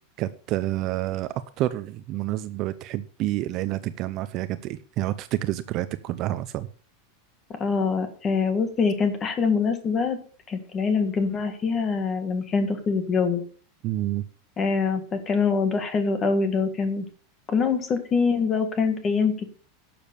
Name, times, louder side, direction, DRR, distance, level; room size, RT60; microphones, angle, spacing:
voice 1, 0.2-6.7 13.8-14.2, right 15 dB, 30° right, 13 dB, 0.6 m, -28 dB
voice 2, 7.6-10.2 10.5-13.4 14.6-17.1 17.5-19.5, left 5 dB, 20° left, 8 dB, 1.8 m, -24 dB
12.0 x 7.2 x 6.9 m, 0.42 s
supercardioid pair, 175°, 0 cm